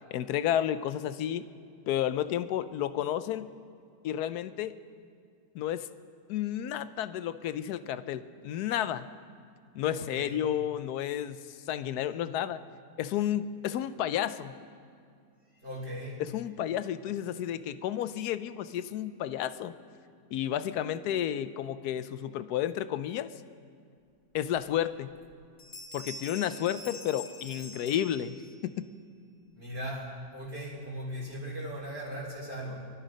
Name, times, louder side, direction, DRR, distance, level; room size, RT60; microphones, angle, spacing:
voice 1, 0.1-1.4 1.9-3.5 4.0-4.7 5.5-5.9 6.3-9.1 9.7-11.4 11.7-12.6 13.0-14.5 16.2-19.7 20.3-23.3 24.3-25.1 25.9-28.9, left 11 dB, 80° left, 13 dB, 1.1 m, -31 dB
voice 2, 9.9-10.5 15.5-16.2 29.5-32.9, equal, 40° right, -9 dB, 3.0 m, -38 dB
sound 1, 25.2-25.3 25.6-28.7, left 2 dB, 45° left, 1.3 m, -45 dB
22.5 x 12.0 x 5.1 m, 2.3 s
omnidirectional pair, 1.7 m